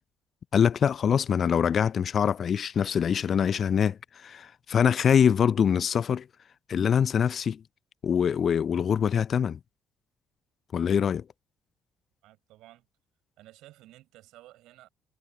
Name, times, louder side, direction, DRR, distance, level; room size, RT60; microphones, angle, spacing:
voice 1, 0.5-6.3 6.7-7.6 8.0-9.6 10.7-11.2, left 7 dB, 45° left, 0.6 m, -24 dB
voice 2, 12.2-12.9 13.4-14.9, right 16 dB, 60° right, 5.3 m, -53 dB
figure-of-eight pair, 50°, 0 cm